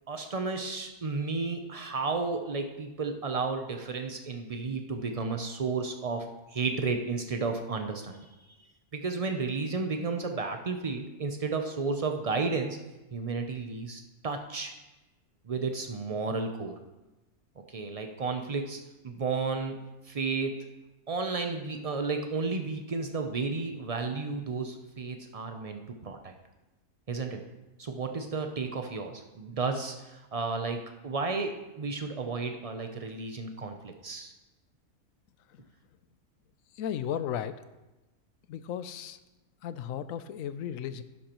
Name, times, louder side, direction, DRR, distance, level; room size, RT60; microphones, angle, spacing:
voice 1, 0.1-8.3 8.9-12.8 13.1-14.7 15.4-16.8 17.7-19.8 20.1-20.7 21.1-26.3 27.1-27.4 27.8-34.3, right 4 dB, 70° right, 5 dB, 0.3 m, -32 dB
voice 2, 36.7-37.6 38.5-39.2 39.6-41.0, left 9 dB, 70° left, 13 dB, 0.9 m, -35 dB
11.5 x 11.0 x 3.0 m, 1.1 s
omnidirectional pair, 1.6 m